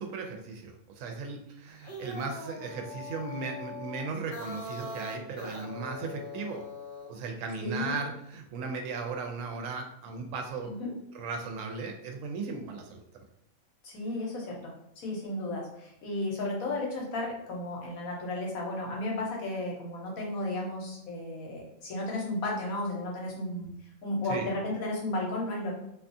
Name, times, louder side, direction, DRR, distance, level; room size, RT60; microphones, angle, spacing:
voice 1, 0.0-6.6 7.1-10.7 11.1-13.2 24.3-24.5, right 4 dB, 70° right, 3 dB, 0.9 m, -36 dB
sound 1, 1.7-7.2, left 2 dB, 55° left, 0.6 m, -42 dB
voice 2, 7.6-7.9 10.6-10.9 13.8-23.7 24.0-25.7, left 2 dB, 75° left, -2 dB, 1.2 m, -34 dB
2.6 x 2.3 x 2.6 m, 0.79 s
omnidirectional pair, 1.5 m